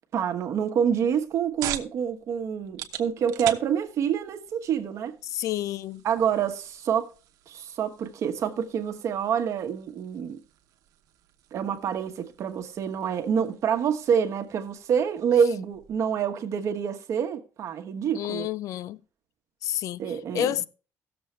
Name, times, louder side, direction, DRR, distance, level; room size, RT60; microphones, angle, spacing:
voice 1, 0.1-5.2 6.0-7.1 7.5-10.4 11.5-18.5 20.0-20.6, right 8 dB, 55° right, 1.2 m, -27 dB
sound 1, 1.0-16.1, right 11 dB, 85° right, 1.0 m, -43 dB
voice 2, 5.2-6.0 18.1-19.0 19.6-20.6, left 12 dB, 65° left, 0.5 m, -30 dB
16.5 x 7.0 x 3.2 m
cardioid pair, 150°, 6 cm